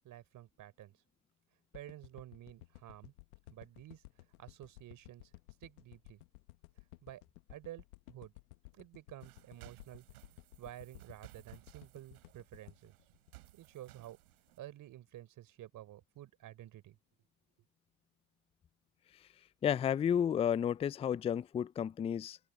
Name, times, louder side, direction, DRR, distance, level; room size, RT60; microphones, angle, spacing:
voice 1, 0.0-1.0 1.7-3.1 3.5-4.0 4.4-5.3 5.6-6.2 7.0-7.2 7.5-8.3 8.7-10.0 10.6-12.9 13.5-14.2 14.6-17.0, right 13 dB, 50° right, 4.0 m, -51 dB
sound 1, 1.7-14.1 14.5-14.6, left 20 dB, 75° left, 1.5 m, -56 dB
sound 2, 9.2-14.6, right 19 dB, 80° right, 4.0 m, -59 dB
voice 2, 19.6-22.4, left 9 dB, 15° left, 0.4 m, -32 dB
open air
hypercardioid pair, 95°, 43 cm